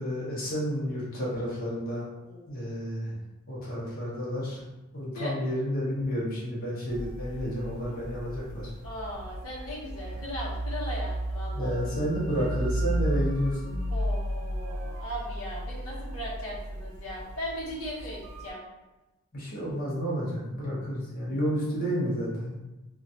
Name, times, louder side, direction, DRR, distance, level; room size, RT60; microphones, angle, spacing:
voice 1, 0.0-2.1 2.5-3.1 3.5-4.6 4.9-8.7 11.5-13.8 19.3-22.6, equal, 40° left, -6 dB, 0.8 m, -31 dB
sound 1, 6.9-18.5, right 1 dB, 85° right, 0.4 m, -34 dB
voice 2, 8.8-11.8 12.4-12.5 13.9-18.6, equal, 85° left, -5 dB, 0.9 m, -38 dB
3.1 x 2.4 x 2.7 m, 1.1 s
head